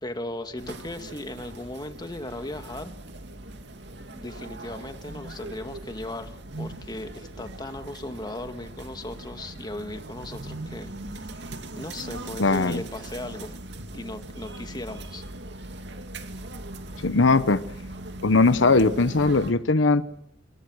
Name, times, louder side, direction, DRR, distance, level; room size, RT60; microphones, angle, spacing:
voice 1, 0.0-2.9 4.1-11.5 11.8-13.5 13.9-15.2, left 1 dB, 25° left, 1.9 m, -37 dB
sound 1, 0.6-19.5, right 2 dB, 65° right, 2.5 m, -40 dB
voice 2, 12.4-12.8 17.0-17.6 18.2-20.0, left 3 dB, 85° left, 1.0 m, -20 dB
27.5 x 23.5 x 6.4 m
head